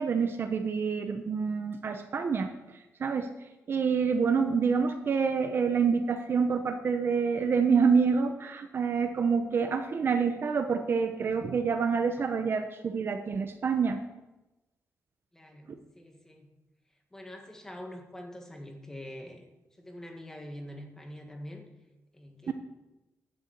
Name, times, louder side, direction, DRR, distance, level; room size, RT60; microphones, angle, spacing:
voice 1, 0.0-2.5 3.0-3.3 3.7-14.0 15.7-15.8 22.5-22.6, right 5 dB, 40° right, 7 dB, 0.8 m, -27 dB
voice 2, 15.3-16.5 17.1-19.4 19.8-21.7 22.1-22.5, left 1 dB, 10° left, 2 dB, 1.7 m, -44 dB
12.0 x 7.0 x 8.3 m, 1.0 s
wide cardioid pair, 175°, 6 cm